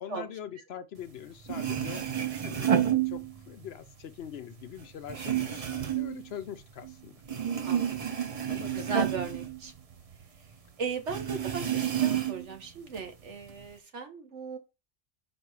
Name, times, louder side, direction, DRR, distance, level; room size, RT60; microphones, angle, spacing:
voice 1, 0.0-2.0 2.4-7.2 7.5-7.6 8.5-8.9, left 9 dB, 65° left, 0.8 m, -43 dB
sound 1, 1.2-1.3 1.4-3.7 4.0-6.9 7.2-10.2 10.5-10.6 11.1-12.6 12.9-13.7, right 9 dB, 40° right, 0.6 m, -30 dB
voice 2, 7.6-8.0 8.7-9.7 10.8-14.6, right 5 dB, 75° right, 1.5 m, -37 dB
5.3 x 3.9 x 4.7 m
omnidirectional pair, 1.2 m